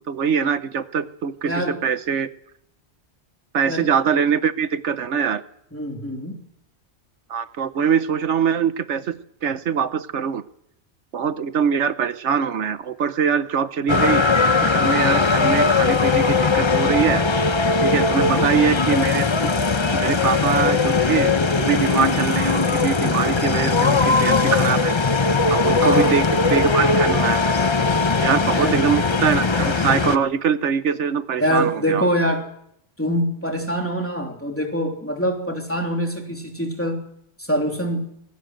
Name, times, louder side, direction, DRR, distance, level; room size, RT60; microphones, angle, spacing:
voice 1, 0.1-2.3 3.5-5.4 7.3-10.4 11.1-14.2 14.7-17.2 17.8-19.5 19.9-24.9 25.5-27.4 28.2-32.1, right 7 dB, 85° right, 12 dB, 1.3 m, -23 dB
voice 2, 1.4-1.8 3.6-3.9 5.7-6.4 18.1-18.5 25.8-26.2 28.5-28.8 31.4-32.5 33.0-37.0 37.4-38.1, equal, 10° left, 2 dB, 3.2 m, -24 dB
sound 1, 13.9-30.2, left 4 dB, 30° left, 0.8 m, -19 dB
20.5 x 17.0 x 7.9 m, 0.75 s
omnidirectional pair, 1.2 m